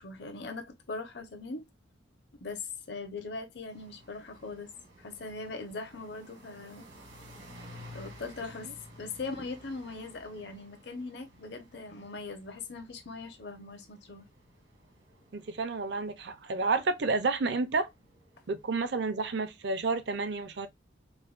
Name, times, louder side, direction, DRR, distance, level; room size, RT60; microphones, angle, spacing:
voice 1, 0.0-1.6 2.4-4.7 5.0-6.9 7.9-8.7 9.0-14.2, left 3 dB, 60° left, 0.8 m, -40 dB
sound 1, 3.7-18.9, equal, 85° right, 1.7 m, -54 dB
voice 2, 15.3-17.9 18.5-20.7, right 3 dB, 65° right, 0.6 m, -30 dB
4.6 x 2.1 x 2.4 m
head